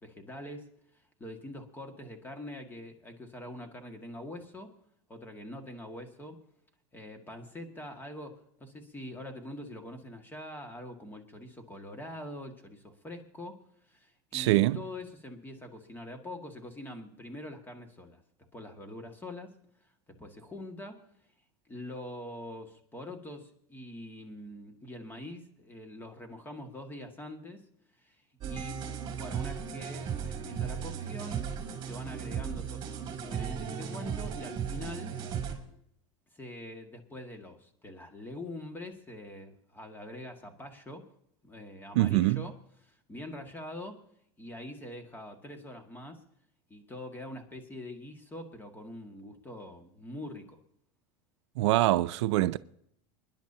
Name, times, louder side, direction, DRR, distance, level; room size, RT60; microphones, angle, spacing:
voice 1, 0.0-4.7 5.1-6.4 6.9-18.2 18.5-19.6 20.1-21.0 21.7-27.6 28.0-28.8 29.1-31.4 31.9-35.1 36.3-41.1 41.4-42.5 42.8-44.0 44.4-46.2 46.7-50.6, left 1 dB, 15° left, 2.0 m, -44 dB
voice 2, 14.3-14.8 41.9-42.4 51.6-52.6, right 17 dB, 85° right, 0.5 m, -24 dB
sound 1, 28.4-35.6, right 7 dB, 35° right, 3.0 m, -36 dB
27.0 x 10.5 x 2.9 m
supercardioid pair, 130°, 15 cm